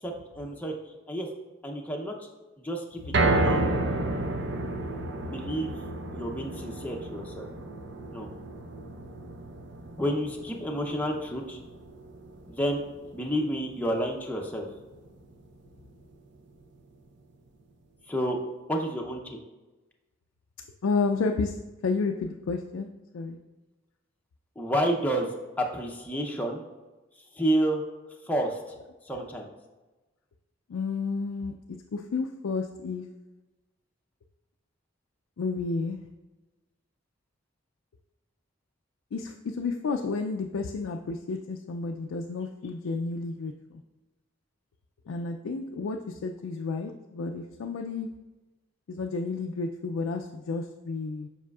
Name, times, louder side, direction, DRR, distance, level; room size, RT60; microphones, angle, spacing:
voice 1, 0.0-0.7 1.1-1.3 1.6-2.3 2.6-4.0 5.2-5.7 6.1-7.5 8.1-8.3 10.0-11.6 12.5-12.8 13.1-14.7 18.1-18.4 18.7-19.4 24.6-25.3 25.6-26.6 27.3-27.8 28.2-28.7 29.0-29.5, right 1 dB, 10° left, 1 dB, 0.6 m, -30 dB
sound 1, 3.1-15.4 15.8-15.9 16.3-16.4, right 2 dB, 60° right, 0.6 m, -32 dB
voice 2, 20.8-21.6 21.8-22.9 23.1-23.4 30.7-31.5 31.9-33.0 35.4-36.0 39.1-43.8 45.1-48.1 48.9-51.3, left 4 dB, 85° left, 3 dB, 0.4 m, -31 dB
7.3 x 5.5 x 2.3 m, 1.1 s
head